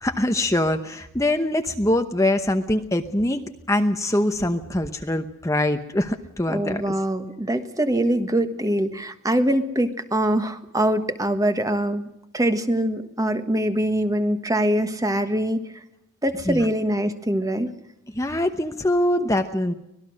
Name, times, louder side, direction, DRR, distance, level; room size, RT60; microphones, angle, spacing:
voice 1, 0.0-7.0 16.5-16.7 18.1-19.7, left 1 dB, 15° left, 6 dB, 0.9 m, -23 dB
voice 2, 6.5-12.1 12.3-15.6 16.2-17.7, right 1 dB, 15° right, 9 dB, 1.4 m, -23 dB
25.0 x 19.5 x 6.4 m, 0.85 s
head